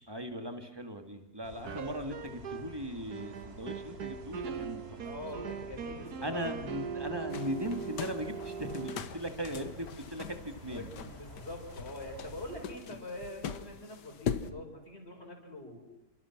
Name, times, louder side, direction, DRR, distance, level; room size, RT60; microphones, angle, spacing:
voice 1, 0.1-5.0 5.3-5.5 6.2-10.9, equal, 15° right, 6 dB, 2.2 m, -38 dB
sound 1, 1.4-12.7, right 2 dB, 35° right, 3.2 m, -50 dB
sound 2, 1.7-2.8 3.1-9.0, right 6 dB, 65° right, 1.8 m, -40 dB
voice 2, 5.0-6.4 10.7-15.8, left 1 dB, 40° left, 2 dB, 6.2 m, -44 dB
sound 3, 7.3-14.5, left 7 dB, 85° left, 1.8 m, -41 dB
28.5 x 27.5 x 6.1 m, 0.90 s
omnidirectional pair, 1.8 m